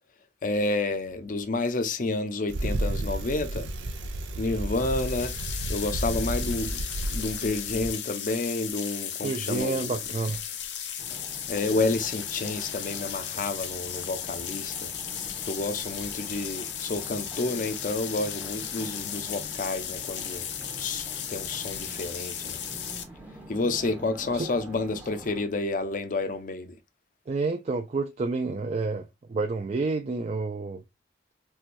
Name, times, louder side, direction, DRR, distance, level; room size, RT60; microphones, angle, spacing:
voice 1, 0.4-3.7 4.4-5.3 5.7-6.8 7.1-10.0 11.5-14.9 15.5-20.5 20.8-22.6 23.5-26.7, left 2 dB, 50° left, 0.5 m, -30 dB
Bicycle, 2.5-7.9, right 1 dB, 90° right, 0.5 m, -32 dB
sound 1, 4.7-23.0, left 9 dB, 90° left, 0.6 m, -35 dB
voice 2, 9.2-10.4 24.3-24.5 27.3-30.8, right 3 dB, 40° right, 0.4 m, -29 dB
sound 2, 11.0-25.4, right 1 dB, 10° right, 0.7 m, -46 dB
4.4 x 2.2 x 2.5 m
head